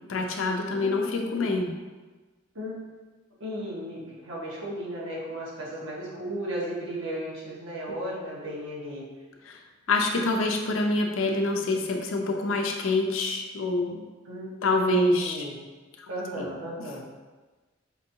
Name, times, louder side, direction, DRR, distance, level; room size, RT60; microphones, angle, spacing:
voice 1, 0.1-1.7 9.9-14.0 14.6-15.3, left 2 dB, 80° left, 3 dB, 0.5 m, -26 dB
voice 2, 0.7-1.5 2.5-2.7 3.4-9.0 14.2-15.5 16.1-17.0, right 1 dB, 70° right, -5 dB, 1.2 m, -35 dB
5.1 x 2.7 x 2.7 m, 1.3 s
head